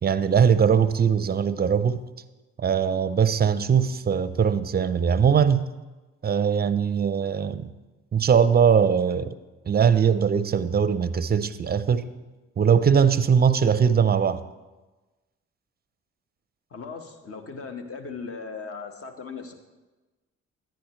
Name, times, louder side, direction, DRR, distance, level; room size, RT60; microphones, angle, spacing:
voice 1, 0.0-2.0 2.6-5.6 6.2-7.7 8.1-9.3 9.7-12.1 12.6-14.4, right 7 dB, 30° right, 0.6 m, -21 dB
voice 2, 16.7-19.5, left 5 dB, 45° left, 1.3 m, -38 dB
10.5 x 10.0 x 3.1 m
hypercardioid pair, 55°, 32 cm